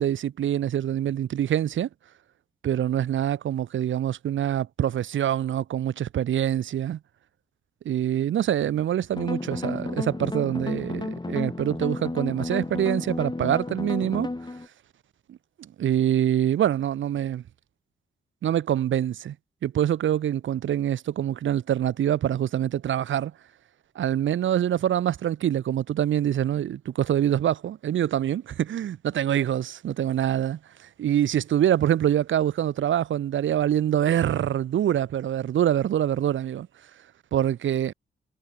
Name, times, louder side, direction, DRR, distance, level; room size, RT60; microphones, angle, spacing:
voice 1, 0.0-1.9 2.6-7.0 7.8-14.3 15.3-17.4 18.4-19.4 19.6-23.3 24.0-36.7 37.3-37.9, right 10 dB, 75° right, 0.7 m, -25 dB
sound 1, 9.1-14.7, left 2 dB, 20° left, 2.6 m, -32 dB
cardioid pair, 55°, 20 cm